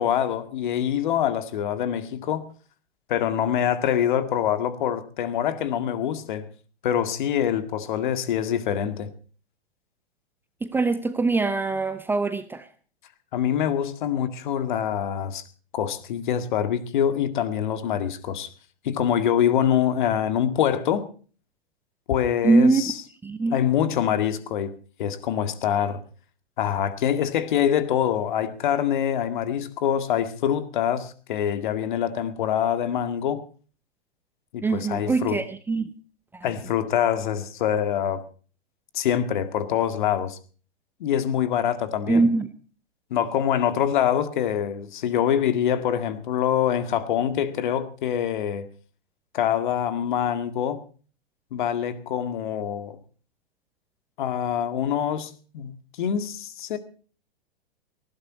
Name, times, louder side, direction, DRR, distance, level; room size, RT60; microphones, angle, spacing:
voice 1, 0.0-2.4 3.1-6.5 6.8-9.1 13.3-15.4 15.7-18.5 18.8-21.0 22.1-22.9 23.5-24.7 25.0-26.0 26.6-33.4 34.7-35.4 36.4-38.2 38.9-40.4 41.0-42.3 43.1-48.7 49.3-50.8 51.5-53.0 54.2-56.8, left 9 dB, 50° left, 2.1 m, -25 dB
voice 2, 10.6-12.7 22.4-22.8 23.2-23.6 34.6-35.9 36.3-36.5 42.1-42.5, right 3 dB, 5° right, 0.8 m, -22 dB
19.0 x 15.5 x 4.1 m
figure-of-eight pair, 110°, 31 cm